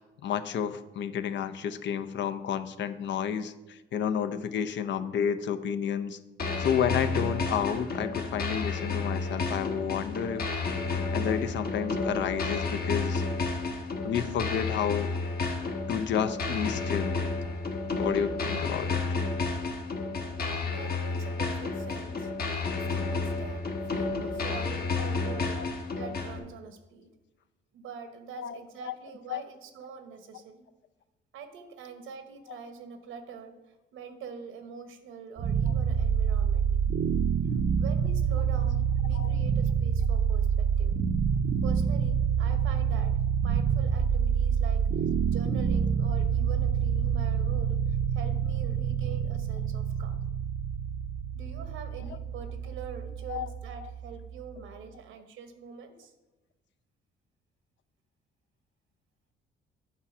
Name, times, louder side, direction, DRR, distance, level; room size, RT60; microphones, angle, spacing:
voice 1, 0.0-6.2 6.6-10.4 11.1-13.2 14.0-15.1 15.9-17.2 17.9-19.0 25.0-25.1 25.6-25.7 28.4-28.6 28.8-28.9 29.3-29.4 32.5-32.6 39.1-39.3 53.3-53.5 53.8-53.9, left 8 dB, 65° left, 10 dB, 0.6 m, -31 dB
sound 1, 6.4-26.4, left 3 dB, 50° left, 1.2 m, -31 dB
voice 2, 20.7-22.3 22.9-25.6 25.9-27.1 27.7-30.7 31.3-36.7 37.4-41.0 41.6-44.9 45.3-50.3 51.3-56.1, right 6 dB, 85° right, 8 dB, 1.0 m, -44 dB
sound 2, 35.4-54.4, right 7 dB, 65° right, 0.6 m, -27 dB
8.3 x 4.4 x 6.0 m, 1.0 s
cardioid pair, 90°, 20 cm